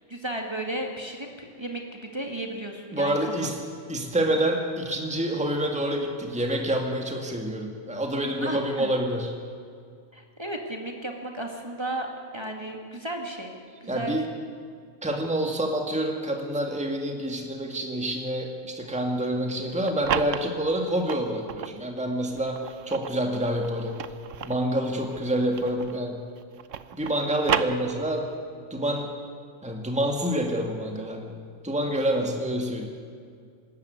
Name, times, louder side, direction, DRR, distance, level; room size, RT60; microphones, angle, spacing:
voice 1, 0.0-3.5 8.4-8.9 10.1-13.5 13.8-14.2, right 1 dB, 20° right, 1 dB, 2.1 m, -34 dB
voice 2, 2.9-3.5 3.9-9.3 13.9-14.3 15.0-24.0 24.4-26.2 26.9-28.3 28.7-29.1 29.6-31.4 31.6-32.9, right 1 dB, 5° right, 2 dB, 2.0 m, -27 dB
sound 1, 19.6-21.8 22.3-26.1 26.4-28.4, right 9 dB, 85° right, 1.2 m, -33 dB
25.0 x 13.5 x 9.4 m, 2.2 s
omnidirectional pair, 1.3 m